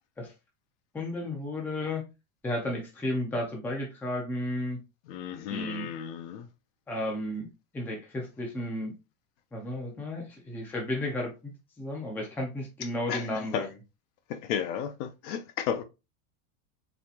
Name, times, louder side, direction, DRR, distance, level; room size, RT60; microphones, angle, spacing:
voice 1, 0.9-2.0 2.4-4.8 5.5-5.9 6.9-7.5 7.7-8.9 9.5-11.5 11.8-13.7, left 1 dB, 5° left, 0.5 m, -33 dB
voice 2, 5.1-6.5 13.1-13.3 13.5-13.7 14.3-15.8, left 8 dB, 55° left, 0.7 m, -33 dB
4.1 x 2.8 x 2.8 m
supercardioid pair, 160°, 42 cm